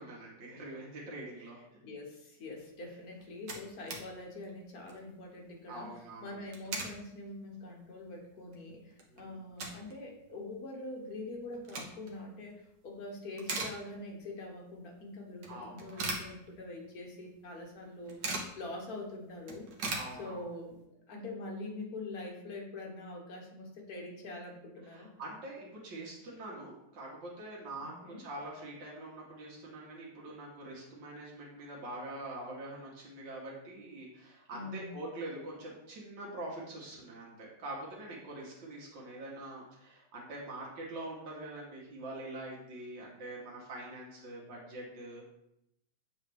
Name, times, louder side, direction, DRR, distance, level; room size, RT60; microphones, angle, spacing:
voice 1, 0.0-1.6 5.7-6.4 9.1-9.4 15.5-16.1 19.9-20.4 24.8-45.2, right 1 dB, 90° right, -4 dB, 2.0 m, -44 dB
voice 2, 1.8-5.9 6.2-19.7 20.2-20.8 21.1-25.1 27.8-28.3 34.5-34.9, left 2 dB, 55° left, 0 dB, 1.5 m, -44 dB
sound 1, 2.9-3.0 3.2-4.1 4.4-4.5 4.8-5.1 6.3-7.0 7.5-7.6 8.1-8.2 8.5-9.9 10.2-10.3 11.3-12.2 12.7-13.0 13.3-14.3 14.6-14.7 15.4-16.9 17.2-17.3 17.5-18.6 19.0-19.1 19.3-20.7, right 3 dB, 70° right, 1.6 m, -40 dB
7.0 x 4.0 x 3.4 m, 0.82 s
omnidirectional pair, 2.0 m